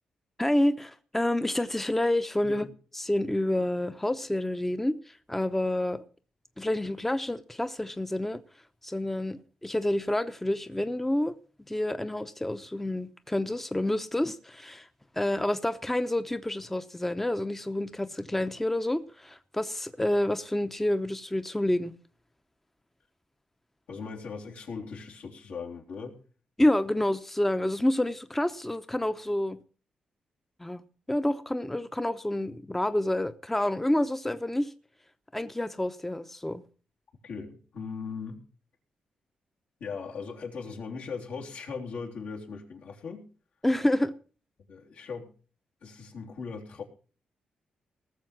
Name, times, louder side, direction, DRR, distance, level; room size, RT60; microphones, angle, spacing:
voice 1, 0.4-2.7 2.9-6.0 6.6-8.4 8.8-11.3 11.7-14.9 15.2-21.9 26.6-29.6 30.6-30.8 31.1-34.7 35.3-36.6 43.6-44.1, left 1 dB, 10° left, 0.8 m, -28 dB
voice 2, 23.9-26.2 37.2-38.4 39.8-43.3 44.7-45.3 45.8-46.8, left 5 dB, 80° left, 3.4 m, -39 dB
18.5 x 7.0 x 5.9 m
cardioid pair, 85°, 3 cm